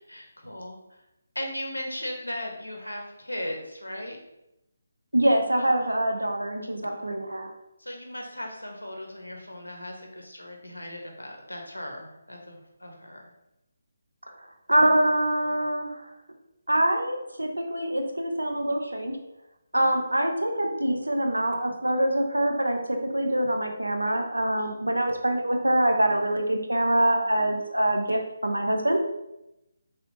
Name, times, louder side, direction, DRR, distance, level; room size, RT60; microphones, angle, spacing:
voice 1, 0.1-1.0 1.3-4.2 5.6-5.9 7.8-13.2 24.6-24.7 26.0-26.2 27.4-27.6, left 1 dB, 85° left, 1 dB, 0.8 m, -37 dB
voice 2, 5.1-7.5 14.7-16.1 16.7-19.2 19.7-29.0, right 1 dB, 80° right, 4 dB, 0.6 m, -25 dB
3.1 x 2.9 x 2.9 m, 0.88 s
figure-of-eight pair, 150°, 0 cm